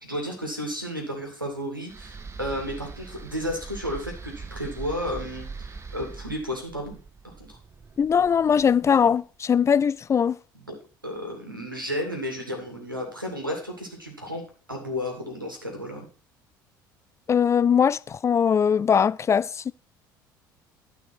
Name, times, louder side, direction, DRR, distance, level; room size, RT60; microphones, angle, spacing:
voice 1, 0.0-7.0 7.2-7.6 10.5-10.7 11.0-14.4 14.7-16.1, equal, 90° right, 2.5 m, -33 dB
sound 1, 1.9-9.0, right 4 dB, 25° right, 1.4 m, -42 dB
voice 2, 8.0-10.4 17.3-19.7, left 7 dB, 25° left, 0.4 m, -21 dB
12.0 x 5.7 x 5.9 m
figure-of-eight pair, 60°, 11 cm